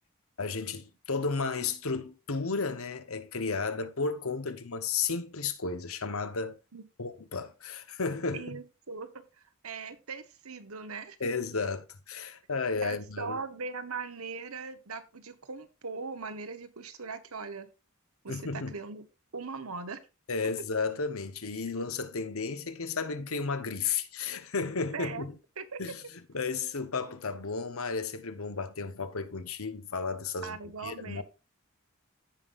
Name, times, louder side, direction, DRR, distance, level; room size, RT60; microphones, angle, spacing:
voice 1, 0.4-6.6 7.0-8.6 11.2-13.4 18.3-18.7 20.3-25.3 25.8-26.0 26.3-30.6 30.8-31.2, left 4 dB, 75° left, 1.2 m, -33 dB
voice 2, 8.3-9.2 9.6-11.2 12.8-17.7 18.2-19.0 19.3-20.0 24.9-25.2 25.6-25.8 30.4-31.2, right 4 dB, 85° right, 1.2 m, -39 dB
15.5 x 5.5 x 2.6 m
head